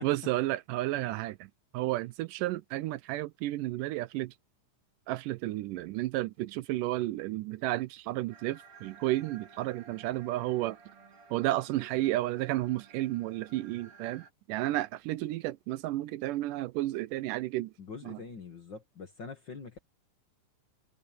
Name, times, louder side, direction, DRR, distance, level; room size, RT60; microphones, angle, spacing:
voice 1, 0.0-4.3 5.1-10.8 11.3-17.7 18.1-18.2, right 16 dB, 80° right, 2.1 m, -32 dB
sound 1, 8.3-14.3, right 5 dB, 55° right, 6.0 m, -55 dB
voice 2, 17.8-19.8, left 5 dB, 45° left, 1.7 m, -44 dB
omnidirectional pair, 3.9 m